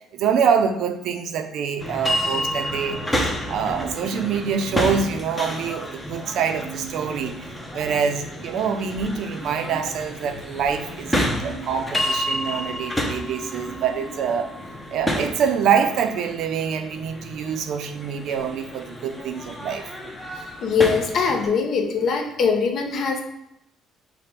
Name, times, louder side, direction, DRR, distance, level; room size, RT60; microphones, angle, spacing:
voice 1, 0.1-3.2 3.5-7.3 7.7-14.5 14.9-19.8, right 7 dB, 65° right, 7 dB, 0.4 m, -25 dB
sound 1, 1.8-21.5, equal, 10° left, 0.6 m, -30 dB
voice 2, 20.6-23.2, left 5 dB, 55° left, 4 dB, 0.6 m, -22 dB
5.0 x 2.1 x 4.3 m, 0.86 s
cardioid pair, 130°, 0 cm